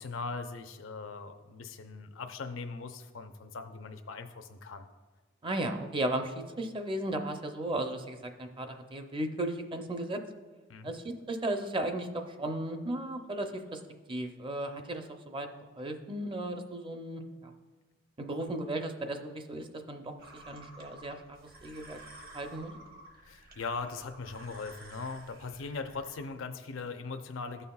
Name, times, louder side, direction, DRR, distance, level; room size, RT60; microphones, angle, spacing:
voice 1, 0.0-4.9 10.7-10.9 23.2-27.7, left 4 dB, 85° left, 6 dB, 0.5 m, -40 dB
voice 2, 5.4-10.2 10.8-13.8 14.1-15.5 15.8-17.5 18.2-20.1 20.5-22.0 22.3-22.7, right 1 dB, 25° right, 5 dB, 0.6 m, -35 dB
sound 1, 20.2-26.3, right 2 dB, 50° right, 1.1 m, -52 dB
14.0 x 5.6 x 2.3 m, 1.3 s
head